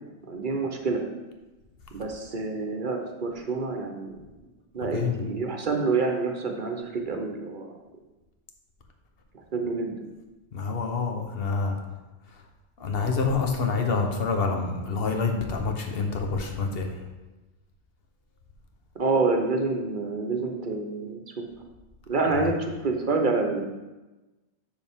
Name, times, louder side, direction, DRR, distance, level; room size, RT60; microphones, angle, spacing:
voice 1, 0.3-1.0 1.9-4.2 4.7-7.7 9.5-10.0 19.0-21.4 22.1-23.7, right 3 dB, 50° right, 3 dB, 0.9 m, -27 dB
voice 2, 10.5-11.8 12.8-16.9, left 4 dB, 60° left, 4 dB, 1.1 m, -27 dB
7.2 x 6.7 x 3.5 m, 1.1 s
omnidirectional pair, 1.2 m